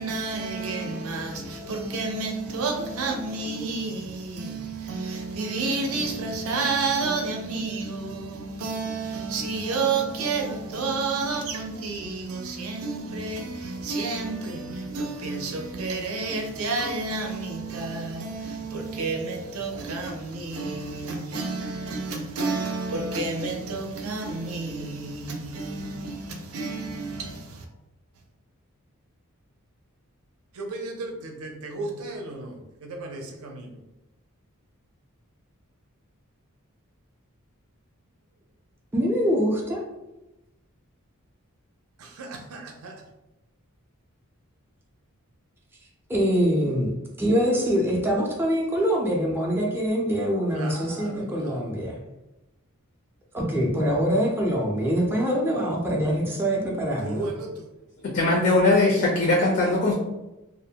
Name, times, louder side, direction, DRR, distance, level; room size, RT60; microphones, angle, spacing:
voice 1, 0.0-27.4 30.6-32.5 32.8-33.7 42.5-42.9 50.5-51.2 57.0-57.5, right 3 dB, 75° right, 0.5 m, -30 dB
voice 2, 38.9-39.8 46.1-46.9 47.2-52.0 53.3-57.3, equal, 10° right, 0.4 m, -24 dB
voice 3, 58.0-59.9, left 2 dB, 50° left, 0.4 m, -20 dB
2.4 x 2.1 x 2.7 m
head